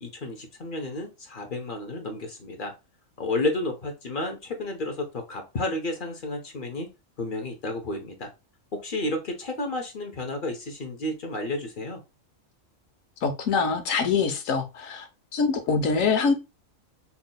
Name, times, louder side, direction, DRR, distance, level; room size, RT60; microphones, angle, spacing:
voice 1, 0.0-2.7 3.2-6.9 7.2-8.3 8.7-12.0, left 2 dB, 45° left, 1.0 m, -31 dB
voice 2, 13.2-15.1 15.3-16.3, left 5 dB, 75° left, 1.2 m, -24 dB
5.8 x 2.8 x 2.2 m
omnidirectional pair, 1.4 m